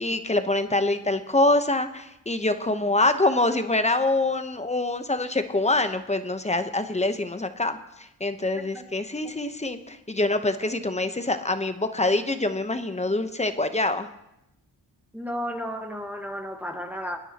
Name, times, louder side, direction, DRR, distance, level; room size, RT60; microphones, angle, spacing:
voice 1, 0.0-14.1, left 2 dB, 15° left, 9 dB, 0.9 m, -25 dB
voice 2, 15.1-17.2, equal, 5° right, 3 dB, 1.4 m, -33 dB
24.5 x 10.0 x 2.9 m, 0.85 s
cardioid pair, 65°, 42 cm